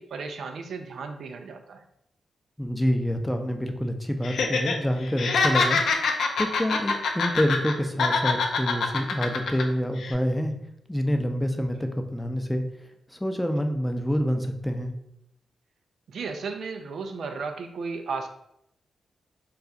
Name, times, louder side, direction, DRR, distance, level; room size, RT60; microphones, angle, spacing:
voice 1, 0.0-1.8 16.1-18.3, right 4 dB, 70° right, 6 dB, 0.3 m, -34 dB
voice 2, 2.6-10.5 10.9-12.6 13.1-14.9, equal, 10° left, 5 dB, 0.5 m, -27 dB
Laughter, 4.2-4.7 5.0-7.7 8.0-9.6 10.0-10.1, left 4 dB, 75° left, 0.4 m, -24 dB
2.4 x 2.3 x 3.9 m, 0.78 s
supercardioid pair, 45°, 0 cm